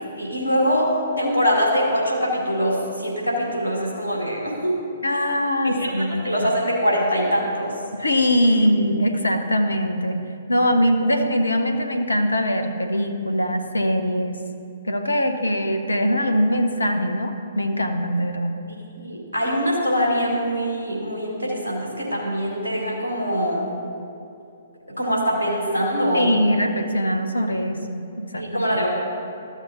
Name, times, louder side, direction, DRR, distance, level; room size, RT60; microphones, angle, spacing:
voice 1, 0.2-0.9 1.2-4.8 5.6-5.9 6.2-7.7 18.7-23.6 25.0-26.3 28.4-29.0, equal, 80° right, -4 dB, 2.0 m, -23 dB
voice 2, 5.0-6.2 7.9-14.4 14.8-18.6 26.1-28.6, equal, 75° left, 7 dB, 0.8 m, -22 dB
13.0 x 7.0 x 2.9 m, 2.6 s
figure-of-eight pair, 120°, 0 cm